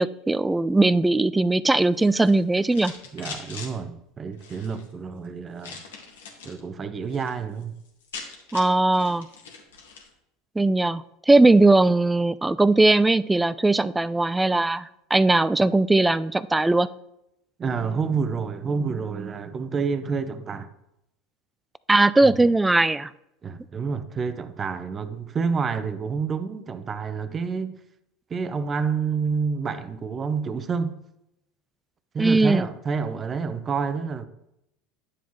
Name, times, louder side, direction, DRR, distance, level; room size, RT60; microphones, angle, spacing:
voice 1, 0.0-2.9 8.5-9.3 10.6-16.9 21.9-23.1 32.2-32.7, right 2 dB, 10° right, 0.3 m, -19 dB
sound 1, 1.9-3.7 4.3-4.9 5.6-6.6 6.9-7.3 7.6-7.7 7.9-10.1, left 5 dB, 85° left, 1.5 m, -41 dB
voice 2, 3.1-5.8 6.4-7.8 17.6-20.7 22.2-22.3 23.4-27.8 28.3-30.9 32.1-34.3, right 5 dB, 30° right, 0.7 m, -28 dB
9.9 x 7.1 x 3.1 m
hypercardioid pair, 85°, 0 cm